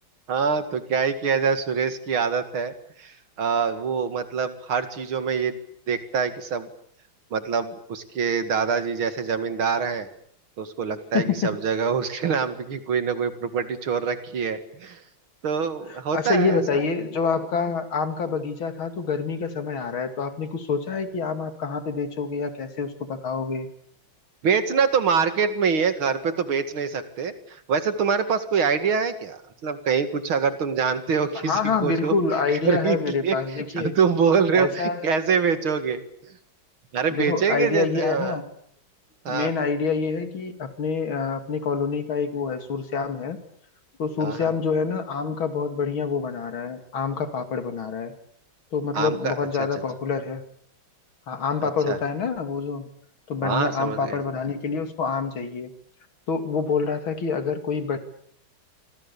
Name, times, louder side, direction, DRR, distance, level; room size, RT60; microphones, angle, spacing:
voice 1, 0.3-2.7 3.0-5.6 5.9-6.7 7.3-10.1 10.6-15.0 15.4-16.8 24.4-32.1 32.5-33.0 33.2-33.3 33.7-36.3 36.9-38.4 39.2-39.5 44.2-44.5 48.9-49.3 51.6-52.0 53.4-54.2, right 6 dB, 85° right, 10 dB, 2.9 m, -25 dB
voice 2, 11.1-11.6 16.1-23.7 31.5-34.0 34.5-35.1 37.1-38.4 39.3-43.4 44.0-48.1 48.7-50.4 51.3-52.9 53.3-55.7 56.3-58.0, left 5 dB, 80° left, 8 dB, 3.2 m, -26 dB
27.0 x 26.0 x 7.0 m, 0.66 s
omnidirectional pair, 2.2 m